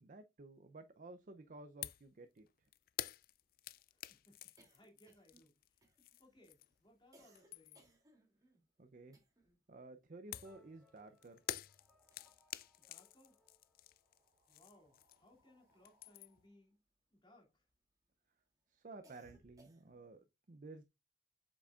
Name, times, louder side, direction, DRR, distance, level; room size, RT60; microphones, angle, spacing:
voice 1, 0.0-2.5 8.8-9.2 9.7-11.4 18.7-20.9, right 2 dB, 50° right, 0.6 m, -54 dB
sound 1, 1.4-1.5 1.8-1.9 2.2-9.7 9.9-11.5 11.9-12.8 13.5-18.0 18.4-20.2, right 1 dB, 20° right, 2.7 m, -71 dB
sound 2, 1.8-2.1 2.4-6.9 7.2-8.0 10.3-15.4 15.7-16.5, left 12 dB, 55° left, 0.3 m, -49 dB
voice 2, 3.9-5.9 6.2-8.0 12.8-13.4 14.5-16.8 17.1-17.7, left 1 dB, 25° left, 2.6 m, -67 dB
sound 3, 10.3-14.6, left 1 dB, 5° right, 3.2 m, -73 dB
7.9 x 6.0 x 2.4 m
head